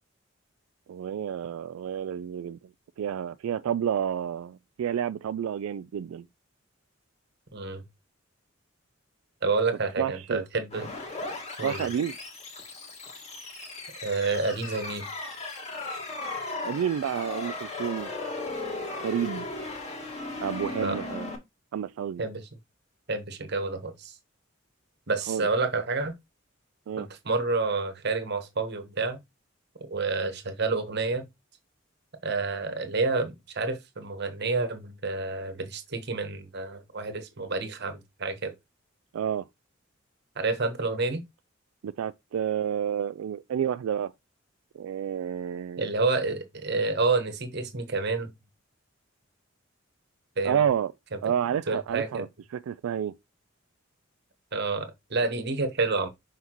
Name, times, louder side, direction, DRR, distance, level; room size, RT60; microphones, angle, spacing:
voice 1, 0.9-2.6 3.0-6.3 10.0-10.5 11.6-12.1 16.6-18.1 19.0-19.5 20.4-21.3 21.7-22.2 25.3-25.5 26.9-27.1 39.1-39.5 41.8-44.1 44.7-45.9 50.4-50.9 51.2-52.3 52.5-53.2, right 8 dB, 90° right, 0.3 m, -30 dB
voice 2, 7.5-7.8 9.4-10.9 11.6-11.9 14.0-15.1 20.7-21.0 22.2-22.5 23.1-24.1 25.1-26.1 27.0-29.2 29.8-31.2 32.2-38.5 40.4-41.2 45.8-48.3 50.4-50.6 51.7-52.2 54.5-56.1, right 3 dB, 55° right, 1.2 m, -29 dB
sound 1, 10.7-21.4, left 2 dB, 35° left, 1.8 m, -36 dB
5.8 x 5.6 x 3.0 m
head